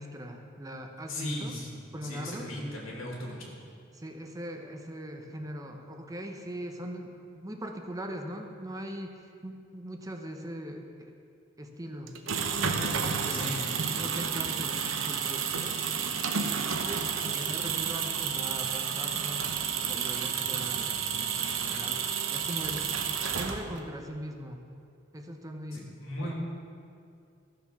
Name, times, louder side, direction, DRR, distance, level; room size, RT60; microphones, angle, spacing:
voice 1, 0.0-1.5 1.9-2.5 3.9-9.2 9.4-11.1 11.6-12.1 12.9-13.5 14.0-15.7 16.3-19.5 19.9-22.0 22.3-22.9 23.3-24.6 25.1-25.9 26.2-26.3, equal, 20° right, 3 dB, 0.9 m, -40 dB
voice 2, 1.1-3.6 13.3-13.8 25.7-26.3, left 1 dB, 85° left, -3 dB, 2.8 m, -37 dB
sound 1, 12.1-23.9, right 6 dB, 85° right, 0.9 m, -31 dB
14.5 x 7.1 x 6.0 m, 2.4 s
head